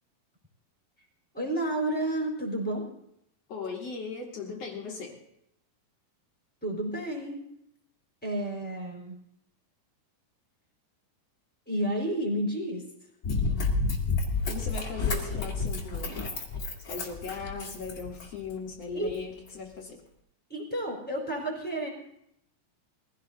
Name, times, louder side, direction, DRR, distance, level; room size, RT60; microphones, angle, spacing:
voice 1, 1.3-2.9 6.6-7.4 8.2-9.2 11.7-12.8 18.9-19.1 20.5-21.9, right 1 dB, 5° left, -1 dB, 3.6 m, -31 dB
voice 2, 3.5-5.2 14.4-16.3 16.9-20.0, left 5 dB, 55° left, 0 dB, 2.1 m, -38 dB
Run, 13.2-18.5 19.1-19.2, left 3 dB, 30° left, 1.8 m, -30 dB
22.0 x 16.0 x 2.8 m, 0.77 s
omnidirectional pair, 4.3 m